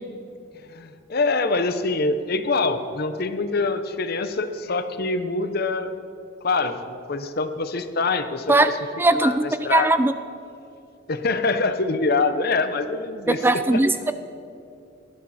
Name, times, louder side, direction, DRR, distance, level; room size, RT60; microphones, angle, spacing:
voice 1, 0.6-5.9 6.4-8.8 9.1-9.9 11.1-13.4 13.7-13.8, left 3 dB, 50° left, 10 dB, 0.8 m, -25 dB
voice 2, 9.0-10.1 13.3-14.1, right 2 dB, 10° right, 10 dB, 0.3 m, -19 dB
19.0 x 12.5 x 4.2 m, 2.6 s
head